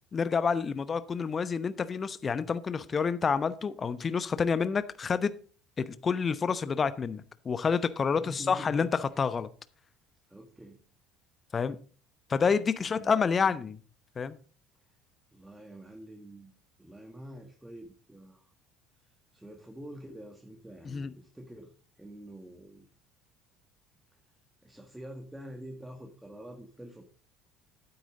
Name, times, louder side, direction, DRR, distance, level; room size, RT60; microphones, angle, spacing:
voice 1, 0.1-5.3 5.8-9.5 11.5-11.8 12.3-13.8 14.2-14.4 20.8-21.1, left 5 dB, 30° left, 14 dB, 0.9 m, -28 dB
voice 2, 8.1-9.2 10.3-10.8 12.8-13.6 15.3-16.5 16.8-18.4 19.3-21.7 22.0-22.9 24.6-27.1, right 1 dB, 10° right, 3 dB, 1.8 m, -47 dB
12.0 x 9.3 x 3.8 m, 0.39 s
figure-of-eight pair, 60°, 0 cm